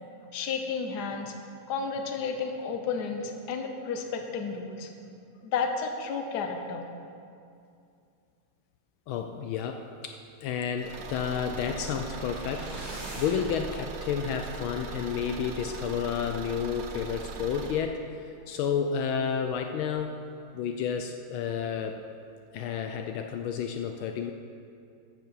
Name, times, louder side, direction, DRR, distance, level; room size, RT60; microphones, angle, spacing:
voice 1, 0.3-1.3 1.7-4.9 5.4-6.9, left 5 dB, 55° left, 4 dB, 1.4 m, -32 dB
voice 2, 9.1-20.2 20.5-22.0 22.5-24.3, left 7 dB, 80° left, 5 dB, 1.4 m, -31 dB
Car / Engine, 10.8-17.8, right 4 dB, 65° right, 1.4 m, -40 dB
sound 1, 11.4-13.6, right 1 dB, 90° right, 3.9 m, -43 dB
13.5 x 7.3 x 5.6 m, 2.5 s
omnidirectional pair, 2.3 m